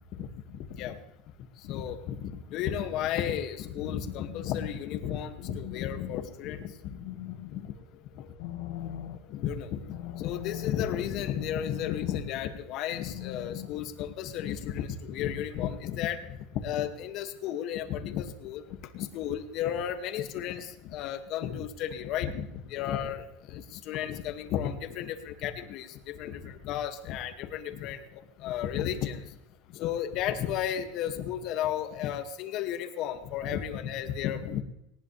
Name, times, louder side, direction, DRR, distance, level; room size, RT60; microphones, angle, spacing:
voice 1, 0.1-1.0 1.7-6.7 7.5-7.6 8.2-8.3 9.3-18.6 18.9-29.3 29.7-34.6, left 10 dB, 55° left, 7 dB, 2.2 m, -33 dB
sound 1, 3.7-13.9, left 12 dB, 75° left, 2.0 m, -42 dB
19.5 x 19.0 x 3.5 m, 0.84 s
supercardioid pair, 115°, 0 cm